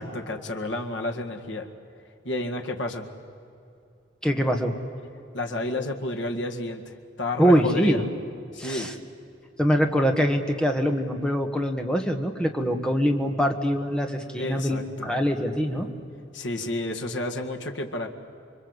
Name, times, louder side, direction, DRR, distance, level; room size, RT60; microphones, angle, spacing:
voice 1, 0.0-1.7 2.2-3.1 5.3-8.0 8.5-8.9 14.3-15.1 16.3-18.1, left 2 dB, 70° left, 3 dB, 2.0 m, -31 dB
voice 2, 4.2-4.7 7.4-8.0 8.6-8.9 9.6-15.9, equal, 5° left, 4 dB, 1.7 m, -23 dB
27.5 x 23.5 x 8.2 m, 2.7 s
head